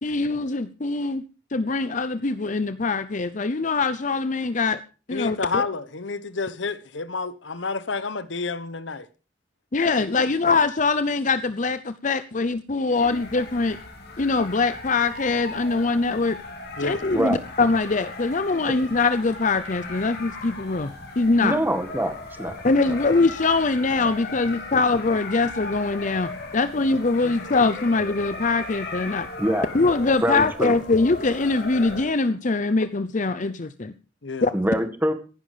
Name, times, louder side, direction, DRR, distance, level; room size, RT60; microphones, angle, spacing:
voice 1, 0.0-1.2 1.5-4.8 5.1-5.6 9.7-13.8 14.2-16.4 16.8-20.9 21.2-21.6 22.6-29.3 29.7-33.9 34.4-34.5, left 3 dB, 45° left, 0.7 m, -23 dB
voice 2, 5.1-9.1 16.8-17.0 34.2-34.5, left 4 dB, 80° left, 1.1 m, -29 dB
sound 1, 13.0-32.0, left 3 dB, 60° left, 4.0 m, -37 dB
voice 3, 21.4-22.5 22.9-23.0 27.2-27.3 29.4-29.7 30.2-30.7 34.5-35.1, right 1 dB, 10° right, 1.9 m, -24 dB
15.5 x 11.0 x 5.0 m
head